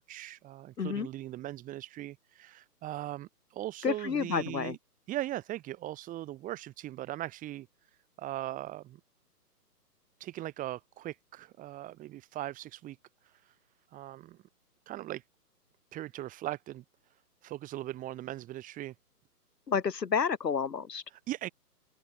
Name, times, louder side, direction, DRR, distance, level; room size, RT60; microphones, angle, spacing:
voice 1, 0.0-4.8 5.1-9.0 10.2-13.0 13.2-13.6 13.9-14.4 14.9-15.2 15.9-18.9 21.1-21.5, right 14 dB, 15° right, 7.5 m, -40 dB
voice 2, 3.8-4.7 19.7-21.0, left 6 dB, 85° left, 2.7 m, -30 dB
open air
hypercardioid pair, 155°, 48 cm